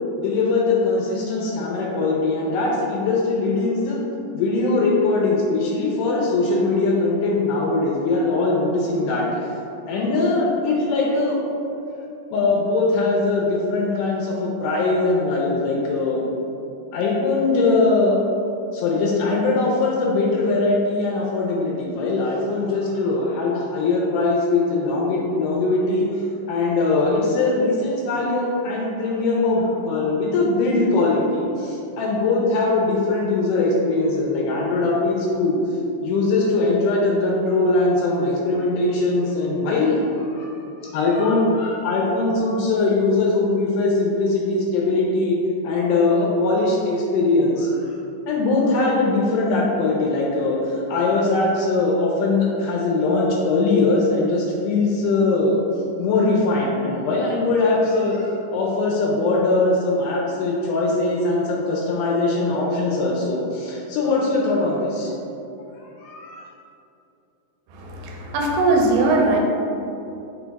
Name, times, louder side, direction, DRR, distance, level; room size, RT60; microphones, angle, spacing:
voice 1, 0.2-4.0 4.3-9.5 9.9-11.4 12.3-16.2 16.9-18.2 18.7-35.6 36.0-45.4 45.6-48.0 48.3-55.6 56.0-65.1 66.0-66.5, left 3 dB, 80° left, -2 dB, 2.0 m, -21 dB
voice 2, 67.7-69.4, right 2 dB, 85° right, 0 dB, 2.3 m, -20 dB
5.5 x 2.3 x 3.9 m, 2.7 s
omnidirectional pair, 4.0 m